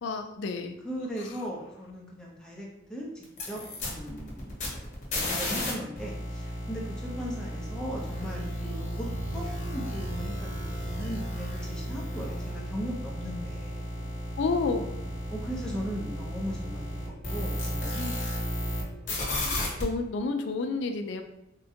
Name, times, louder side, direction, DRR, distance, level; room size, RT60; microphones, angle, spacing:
voice 1, 0.0-0.8 14.4-14.9 19.4-21.2, left 4 dB, 65° left, 6 dB, 0.3 m, -30 dB
voice 2, 0.8-9.1 9.3-13.8 15.3-16.8 17.3-18.1, equal, 5° left, -3 dB, 0.5 m, -38 dB
sound 1, 3.2-5.7 6.0-18.8 19.1-19.8, left 1 dB, 35° left, 0.8 m, -34 dB
sound 2, 4.4-19.6, right 1 dB, 50° right, 0.5 m, -46 dB
3.6 x 2.1 x 2.7 m, 0.88 s
head